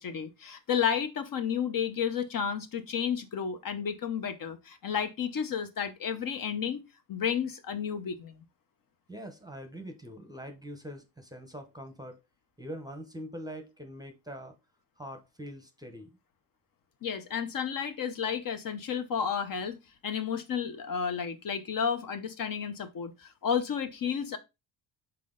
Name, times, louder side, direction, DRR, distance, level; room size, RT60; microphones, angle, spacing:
voice 1, 0.0-6.8 7.1-8.4 17.0-24.4, left 7 dB, 45° left, 0.8 m, -32 dB
voice 2, 9.1-12.2 12.6-14.6 15.0-16.2, equal, 10° right, 0.8 m, -43 dB
6.0 x 4.3 x 3.7 m
cardioid pair, 135°, 45 cm